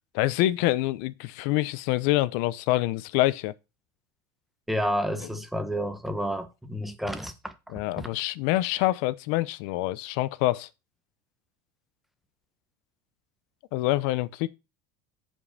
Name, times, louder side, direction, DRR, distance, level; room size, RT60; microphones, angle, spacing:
voice 1, 0.1-3.5 7.7-10.7 13.7-14.5, left 17 dB, 65° left, 0.7 m, -26 dB
voice 2, 4.7-7.5 8.0-8.1, equal, ahead, 1.1 m, -30 dB
7.5 x 5.4 x 6.5 m
supercardioid pair, 145°, 11 cm